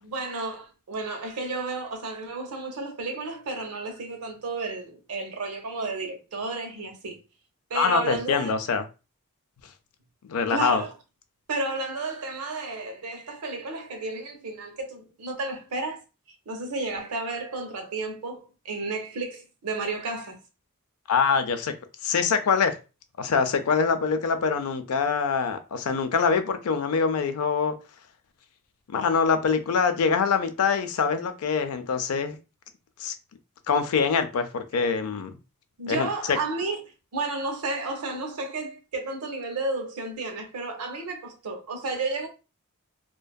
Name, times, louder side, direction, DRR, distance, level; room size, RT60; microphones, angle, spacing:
voice 1, 0.0-7.2 7.7-8.5 10.5-10.9 11.5-16.0 16.5-20.4 35.8-36.8 37.1-42.3, right 3 dB, 85° right, 0.7 m, -32 dB
voice 2, 7.7-8.8 10.3-10.8 21.1-21.8 22.0-22.8 23.2-27.8 28.9-32.4 33.0-33.1 33.7-35.4 35.9-36.4, left 5 dB, 80° left, 0.4 m, -24 dB
2.6 x 2.2 x 2.2 m
head